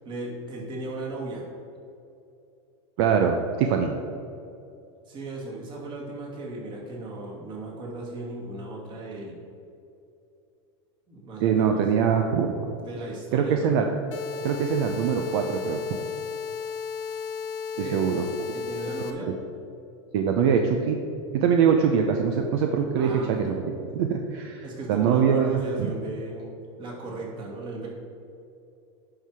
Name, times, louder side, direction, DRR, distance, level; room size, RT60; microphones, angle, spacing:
voice 1, 0.0-1.4 5.1-9.4 11.1-11.9 12.8-13.7 17.8-18.1 18.5-19.3 23.0-23.6 24.6-27.9, right 2 dB, 30° right, -2 dB, 2.3 m, -36 dB
voice 2, 3.0-3.9 11.4-12.6 13.3-13.9 14.4-15.8 17.9-18.3 20.1-21.0 21.3-23.1 23.9-25.5 25.8-25.9, right 7 dB, 65° right, 4 dB, 0.8 m, -23 dB
sound 1, 14.1-19.1, left 6 dB, 85° left, 1.5 m, -34 dB
10.0 x 5.8 x 4.8 m, 2.7 s
supercardioid pair, 145°, 15 cm